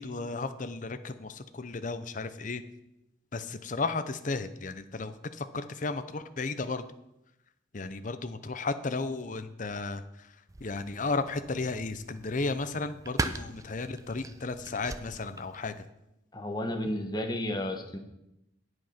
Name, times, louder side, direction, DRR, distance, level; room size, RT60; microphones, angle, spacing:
voice 1, 0.0-2.6 3.3-6.8 7.7-10.3 10.6-15.8, left 3 dB, 40° left, 11 dB, 0.7 m, -34 dB
sound 1, 10.5-15.9, right 2 dB, 15° right, 0.4 m, -40 dB
voice 2, 16.3-18.0, left 1 dB, 20° left, 4 dB, 1.2 m, -32 dB
9.4 x 7.9 x 5.8 m, 0.87 s
head